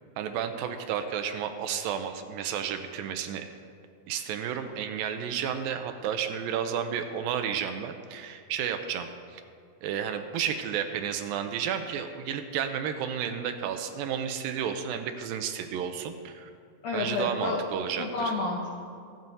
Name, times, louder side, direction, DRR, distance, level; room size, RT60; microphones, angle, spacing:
voice 1, 0.2-3.5 4.1-9.4 9.8-16.5 16.9-18.3, right 8 dB, 80° right, 7 dB, 2.2 m, -32 dB
voice 2, 16.8-17.6 18.0-18.7, left 3 dB, 70° left, -1 dB, 2.0 m, -30 dB
26.0 x 9.0 x 2.8 m, 2.3 s
omnidirectional pair, 4.4 m